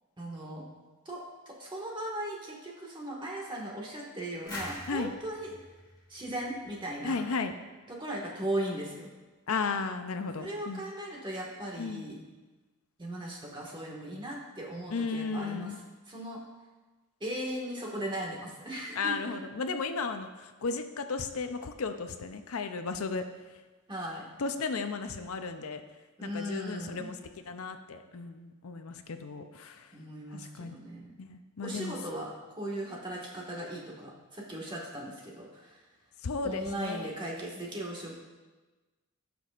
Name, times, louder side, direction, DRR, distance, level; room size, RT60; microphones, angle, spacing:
voice 1, 0.2-0.6 1.0-5.6 6.1-7.2 7.9-9.1 10.4-12.2 13.0-15.7 16.1-16.4 17.2-19.1 23.9-24.3 26.2-27.1 29.9-31.1 31.6-35.8 36.4-38.1, right 1 dB, 20° right, -3 dB, 1.7 m, -38 dB
sound 1, 4.5-7.2, left 1 dB, 20° left, 2.2 m, -44 dB
voice 2, 7.0-7.5 9.5-10.8 11.8-12.0 14.9-15.8 19.0-23.6 24.4-25.8 26.2-30.0 30.3-30.8 31.2-32.0 36.2-37.2, left 4 dB, 70° left, 8 dB, 0.6 m, -35 dB
16.5 x 6.0 x 2.5 m, 1.2 s
head